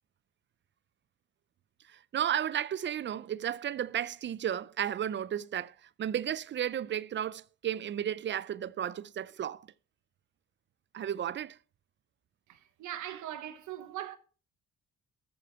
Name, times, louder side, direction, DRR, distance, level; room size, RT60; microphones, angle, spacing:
voice 1, 1.9-9.7 10.9-11.6, right 10 dB, 40° right, 0.4 m, -33 dB
voice 2, 12.5-14.2, right 12 dB, 75° right, 0.9 m, -40 dB
13.5 x 5.0 x 4.3 m
cardioid pair, 90°, 30 cm